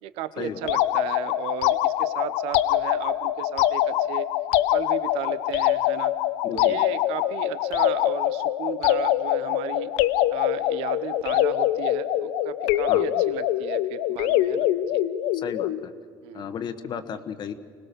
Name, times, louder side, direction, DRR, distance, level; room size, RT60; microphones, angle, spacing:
voice 1, 0.0-4.3 4.7-6.1 6.5-9.9 10.3-15.0 16.2-16.5, right 11 dB, 80° right, 13 dB, 0.9 m, -35 dB
sound 1, 0.6-15.9, left 13 dB, 90° left, 0.7 m, -24 dB
voice 2, 6.4-6.8 12.9-13.0 15.3-15.9 16.3-17.5, left 8 dB, 50° left, 10 dB, 1.3 m, -33 dB
25.0 x 19.0 x 6.9 m, 2.1 s
cardioid pair, 120°, 10 cm